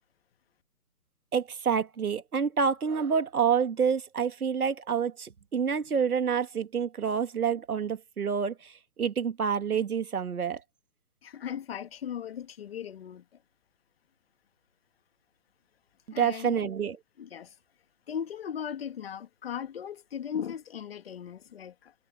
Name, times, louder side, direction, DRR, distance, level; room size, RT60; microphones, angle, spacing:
voice 1, 1.3-10.6 16.2-17.0, right 7 dB, 65° right, 2.1 m, -28 dB
voice 2, 11.2-13.2 16.1-16.7 17.2-17.5 18.1-21.9, left 8 dB, 40° left, 2.1 m, -38 dB
hypercardioid pair, 155°, 48 cm